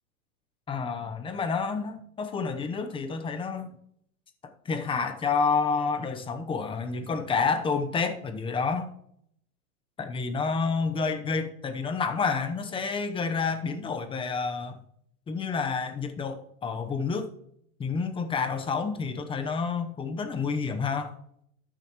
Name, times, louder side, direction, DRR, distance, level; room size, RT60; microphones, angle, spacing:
voice 1, 0.7-3.8 4.4-8.9 10.0-14.8 15.3-17.3 17.8-21.1, left 5 dB, 10° left, 8 dB, 0.9 m, -29 dB
13.5 x 10.5 x 3.1 m, 0.70 s
supercardioid pair, 145°, 42 cm